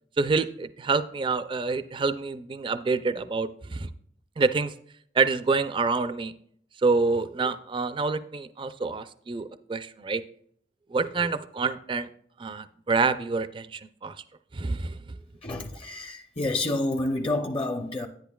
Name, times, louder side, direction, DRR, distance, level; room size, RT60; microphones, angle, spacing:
voice 1, 0.2-3.9 4.4-4.7 5.1-6.3 6.8-10.2 10.9-12.1 12.4-14.2 14.5-15.2, right 4 dB, 30° right, 0.4 m, -27 dB
voice 2, 15.4-18.1, left 2 dB, 30° left, 0.6 m, -29 dB
10.5 x 10.5 x 2.3 m
head